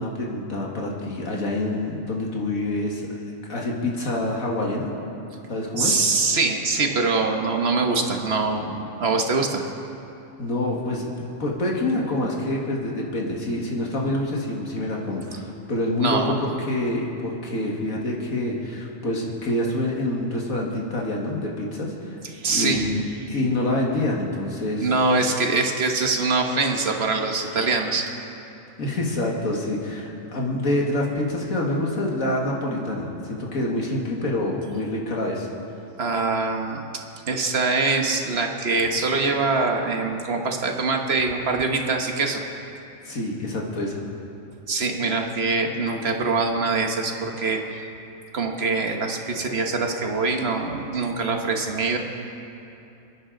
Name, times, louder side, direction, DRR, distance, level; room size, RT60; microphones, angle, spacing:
voice 1, 0.0-3.1 3.5-4.9 5.5-6.0 10.4-22.2 22.5-23.0 23.3-24.9 28.8-35.5 43.0-44.0, left 1 dB, 70° left, -2 dB, 2.2 m, -26 dB
voice 2, 5.8-9.6 16.0-16.3 22.3-22.9 24.8-28.1 36.0-36.8 37.3-42.4 44.7-47.8 48.3-52.0, right 3 dB, 50° right, 3 dB, 1.4 m, -23 dB
28.5 x 9.9 x 3.9 m, 2.8 s
omnidirectional pair, 1.5 m